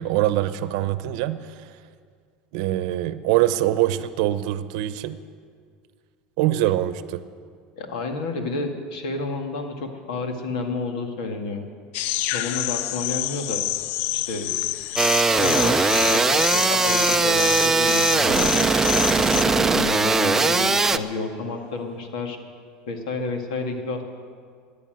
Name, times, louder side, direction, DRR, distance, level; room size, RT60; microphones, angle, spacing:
voice 1, 0.0-1.7 2.5-5.2 6.4-7.2, right 14 dB, 70° right, 13 dB, 0.8 m, -23 dB
voice 2, 7.8-11.6 12.3-13.7 14.1-14.6 15.4-18.7 19.2-22.4 22.9-24.0, left 3 dB, 90° left, 4 dB, 2.0 m, -30 dB
sound 1, 11.9-19.4, left 16 dB, 55° left, 0.4 m, -28 dB
sound 2, 15.0-21.0, right 3 dB, 10° right, 0.5 m, -20 dB
Human voice, 21.1-22.1, left 2 dB, 30° left, 2.7 m, -48 dB
14.0 x 10.0 x 9.0 m, 2.1 s
supercardioid pair, 135°, 4 cm